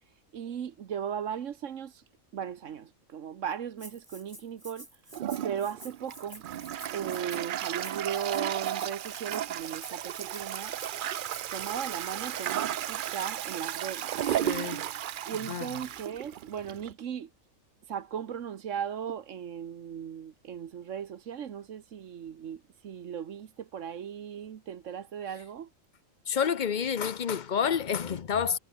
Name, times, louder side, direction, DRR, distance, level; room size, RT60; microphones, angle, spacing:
voice 1, 0.0-2.0 2.3-6.5 6.9-10.8 11.5-14.2 15.2-17.3 17.8-25.7, right 8 dB, 65° right, 1.3 m, -37 dB
Rattle (instrument), 3.8-11.7, right 1 dB, 15° right, 6.3 m, -49 dB
Toilet flush, 5.1-16.9, right 11 dB, 80° right, 0.4 m, -34 dB
voice 2, 14.4-14.8 15.4-15.7 26.3-28.6, left 7 dB, 45° left, 0.7 m, -29 dB
omnidirectional pair, 1.4 m